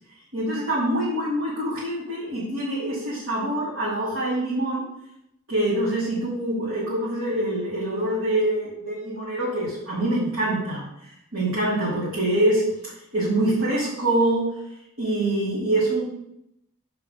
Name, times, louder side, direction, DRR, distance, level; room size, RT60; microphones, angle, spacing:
voice 1, 0.3-4.8 5.5-10.9 11.3-12.6 13.1-14.5 15.0-16.0, right 1 dB, 85° right, -9 dB, 2.8 m, -25 dB
7.3 x 4.6 x 5.4 m, 0.79 s
head